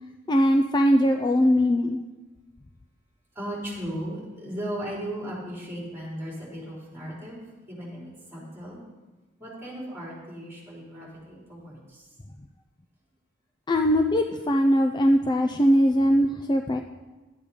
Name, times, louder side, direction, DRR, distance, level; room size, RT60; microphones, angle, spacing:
voice 1, 0.3-2.0 13.7-16.8, equal, 20° left, 5 dB, 0.4 m, -21 dB
voice 2, 3.3-8.8 9.4-12.1, equal, 10° right, -5 dB, 4.3 m, -36 dB
12.5 x 8.5 x 5.1 m, 1.2 s
head